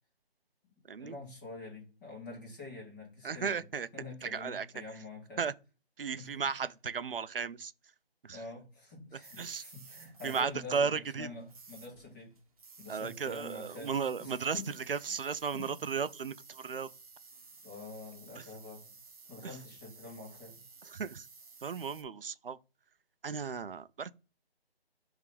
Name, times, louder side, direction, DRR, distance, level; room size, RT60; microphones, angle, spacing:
voice 1, 1.0-3.6 3.9-5.4 6.1-6.3 8.3-12.4 12.8-14.6 15.0-15.2 15.5-15.7 17.6-18.9 19.3-20.6, left 3 dB, 20° left, 2.6 m, -46 dB
voice 2, 3.2-3.9 4.2-4.7 5.4-5.5 6.0-7.7 8.2-8.4 9.4-9.6 10.2-11.3 12.9-16.9 18.4-18.5 19.4-19.6 20.8-21.3 21.6-22.6 23.2-24.1, right 6 dB, 60° right, 0.6 m, -35 dB
sound 1, 9.2-22.0, right 4 dB, 35° right, 1.3 m, -54 dB
5.2 x 3.6 x 4.9 m
figure-of-eight pair, 170°, 31 cm